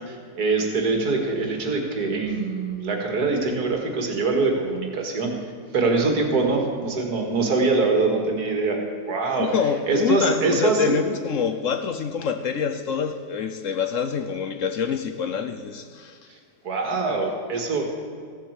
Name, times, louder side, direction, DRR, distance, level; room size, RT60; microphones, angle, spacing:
voice 1, 0.1-5.3 5.7-9.5 9.9-11.0 16.6-17.8, right 3 dB, 65° right, 2 dB, 2.4 m, -23 dB
voice 2, 9.4-16.2, left 7 dB, 60° left, 8 dB, 0.9 m, -26 dB
15.0 x 7.6 x 8.1 m, 2.1 s
omnidirectional pair, 1.8 m